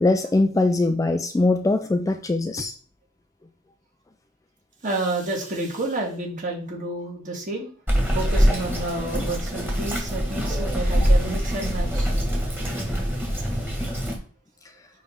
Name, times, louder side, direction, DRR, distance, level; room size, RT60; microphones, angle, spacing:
voice 1, 0.0-2.7, left 2 dB, 15° left, 7 dB, 0.3 m, -21 dB
voice 2, 4.8-7.7 8.1-12.1, right 2 dB, 40° right, -1 dB, 1.9 m, -30 dB
Bird vocalization bird call bird song, 7.9-14.1, equal, 10° right, 1.6 m, -23 dB
9.2 x 3.2 x 3.7 m, 0.41 s
head